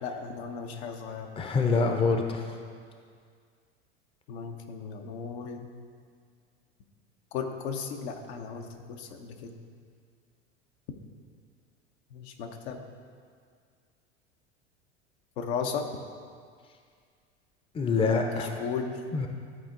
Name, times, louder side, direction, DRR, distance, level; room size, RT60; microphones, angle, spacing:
voice 1, 0.0-1.3 4.3-5.7 7.3-9.6 12.1-12.8 15.4-15.9 18.3-19.0, left 6 dB, 65° left, 4 dB, 0.9 m, -35 dB
voice 2, 1.4-2.4 17.7-18.5 19.1-19.3, left 4 dB, 15° left, 4 dB, 0.7 m, -25 dB
12.5 x 4.3 x 3.8 m, 2.1 s
hypercardioid pair, 85°, 35 cm